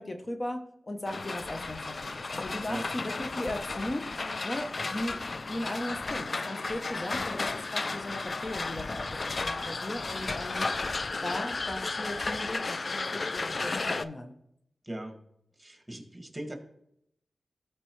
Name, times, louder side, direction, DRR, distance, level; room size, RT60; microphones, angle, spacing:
voice 1, 0.0-2.0 2.3-4.1 4.4-5.2 5.5-10.7 11.2-14.3, left 1 dB, 40° left, 5 dB, 0.8 m, -37 dB
sound 1, 1.1-14.0, left 3 dB, 55° left, 0.3 m, -34 dB
voice 2, 14.8-15.2 15.6-16.6, right 1 dB, 15° right, 3 dB, 1.9 m, -39 dB
13.0 x 4.4 x 3.2 m, 0.76 s
cardioid pair, 40°, 0 cm